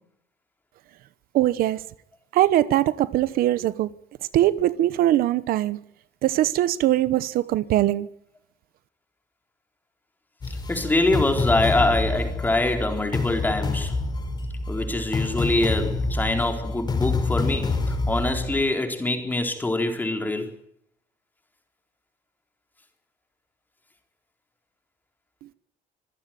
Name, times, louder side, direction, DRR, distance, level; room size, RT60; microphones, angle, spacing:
voice 1, 1.3-1.8 2.3-3.9 4.3-5.8 6.2-8.1, right 14 dB, 70° right, 1.0 m, -21 dB
sound 1, 10.4-18.6, left 3 dB, 25° left, 4.4 m, -27 dB
voice 2, 10.5-14.0 14.7-20.5, left 2 dB, 10° left, 4.2 m, -24 dB
25.5 x 15.5 x 9.2 m
cardioid pair, 150°, 16 cm